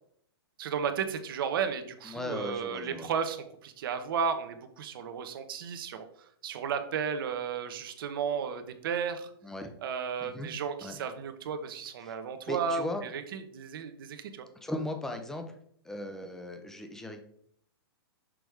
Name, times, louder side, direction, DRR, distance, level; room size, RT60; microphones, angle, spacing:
voice 1, 0.6-9.3 9.8-14.5, right 6 dB, 55° right, 8 dB, 0.9 m, -34 dB
voice 2, 2.0-3.1 9.4-9.7 10.2-10.5 10.8-11.0 12.0-12.2 12.5-13.0 14.5-15.5 15.8-17.2, left 1 dB, 5° left, 6 dB, 0.5 m, -37 dB
6.2 x 3.4 x 4.8 m, 0.65 s
hypercardioid pair, 150°, 14 cm